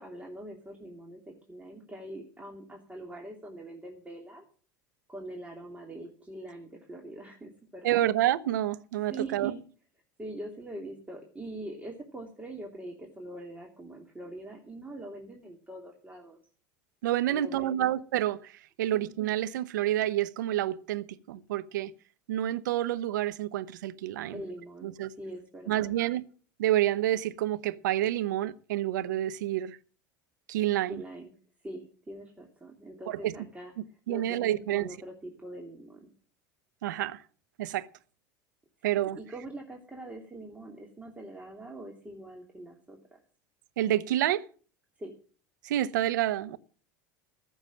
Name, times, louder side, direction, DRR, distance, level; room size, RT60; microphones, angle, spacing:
voice 1, 0.0-4.4 5.1-8.1 9.1-9.6 10.2-16.4 17.3-17.9 18.9-19.1 24.3-25.9 30.9-31.3 31.6-33.7 34.1-36.1 39.0-43.2 45.0-45.1, right 1 dB, 15° right, 2.9 m, -43 dB
voice 2, 7.8-9.5 17.0-21.9 22.3-24.4 24.8-25.1 25.7-26.2 26.6-29.8 30.5-31.0 33.1-33.3 33.8-34.9 36.8-37.2 37.6-37.9 38.8-39.2 43.8-44.4 45.6-46.6, right 13 dB, 80° right, 0.9 m, -28 dB
14.5 x 7.3 x 7.4 m
hypercardioid pair, 85°, 10 cm